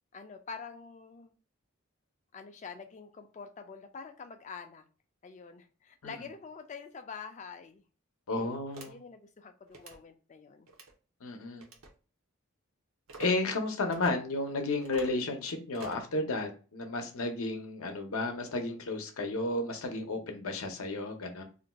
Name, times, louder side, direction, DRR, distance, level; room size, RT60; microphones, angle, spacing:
voice 1, 0.1-1.3 2.3-4.8 5.2-7.8 8.9-10.7, left 5 dB, 35° left, 7 dB, 0.3 m, -46 dB
voice 2, 8.3-8.9 11.2-11.6 13.2-21.4, left 2 dB, 80° left, 5 dB, 0.6 m, -33 dB
sound 1, 8.7-8.9 9.7-10.0 10.7-10.9 11.6-11.9 13.1-13.3 13.9-14.1 14.8-15.2 15.7-16.1, right 3 dB, 75° right, 0.6 m, -47 dB
2.5 x 2.2 x 3.9 m, 0.36 s
head